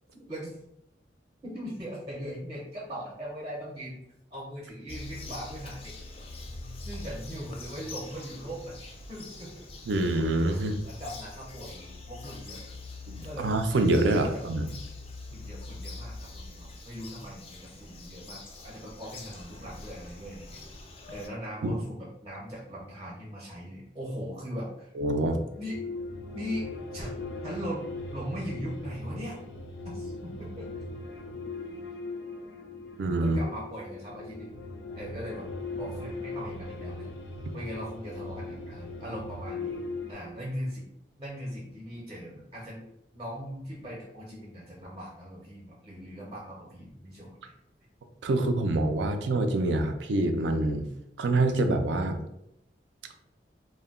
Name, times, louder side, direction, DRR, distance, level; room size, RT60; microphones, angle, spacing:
voice 1, 0.1-0.6 1.4-4.0 4.3-6.1 6.8-9.7 10.8-12.8 13.2-13.6 14.1-14.5 15.3-20.6 21.1-24.9 25.6-25.8 26.3-26.6 26.9-27.1 27.4-29.4 29.8-30.7 33.2-34.5 35.0-37.1 37.5-39.8 40.1-40.9 41.2-42.9 43.1-47.5, equal, 25° right, -4 dB, 0.5 m, -40 dB
Bird vocalization bird call bird song, 4.9-21.3, left 3 dB, 35° left, 0.3 m, -44 dB
voice 2, 9.9-10.8 13.1-14.7 21.6-21.7 25.0-25.4 33.0-33.4 48.2-50.9 51.2-52.2, right 2 dB, 90° right, 6 dB, 0.4 m, -26 dB
sound 1, 25.4-40.1, left 2 dB, 90° left, 0.5 m, -39 dB
2.1 x 2.1 x 3.5 m, 0.80 s
head